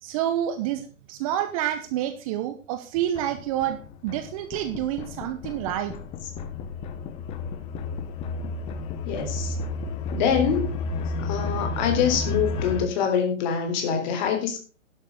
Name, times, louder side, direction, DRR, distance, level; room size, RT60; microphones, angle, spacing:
voice 1, 0.0-5.9, right 11 dB, 25° right, 9 dB, 1.0 m, -28 dB
sound 1, 3.0-12.9, left 3 dB, 15° left, 0.8 m, -32 dB
voice 2, 9.1-9.6 10.1-10.7 11.2-14.6, left 7 dB, 35° left, 5 dB, 3.6 m, -25 dB
11.5 x 10.5 x 3.7 m, 0.36 s
hypercardioid pair, 135°, 41 cm